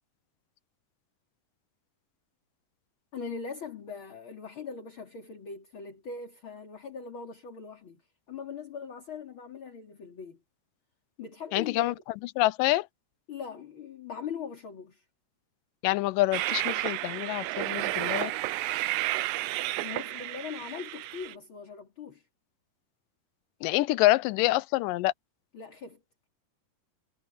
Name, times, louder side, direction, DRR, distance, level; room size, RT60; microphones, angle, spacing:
voice 1, 3.1-8.0 8.3-10.4 11.2-11.9 13.3-15.0 19.8-22.2 25.5-26.0, left 5 dB, 40° left, 3.5 m, -41 dB
voice 2, 11.5-11.9 12.4-12.9 15.8-18.3 23.6-25.1, left 18 dB, 90° left, 2.3 m, -26 dB
Train, 16.3-21.3, right 17 dB, 75° right, 1.9 m, -31 dB
omnidirectional pair, 3.8 m